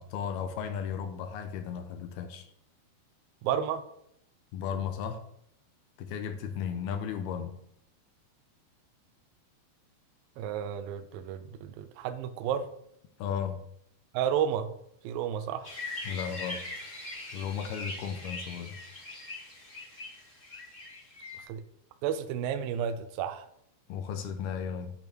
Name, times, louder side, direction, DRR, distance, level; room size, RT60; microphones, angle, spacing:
voice 1, 0.0-2.5 4.5-5.2 6.0-7.5 13.2-13.6 16.1-16.9 17.3-18.8 23.9-24.9, left 7 dB, 75° left, 7 dB, 2.7 m, -35 dB
voice 2, 3.4-3.8 10.4-12.7 14.1-14.8 15.0-15.7 21.4-21.6 22.0-23.5, right 9 dB, 75° right, 9 dB, 2.3 m, -32 dB
sound 1, 15.6-21.4, left 2 dB, 25° left, 1.3 m, -41 dB
9.1 x 5.8 x 6.2 m, 0.72 s
omnidirectional pair, 4.7 m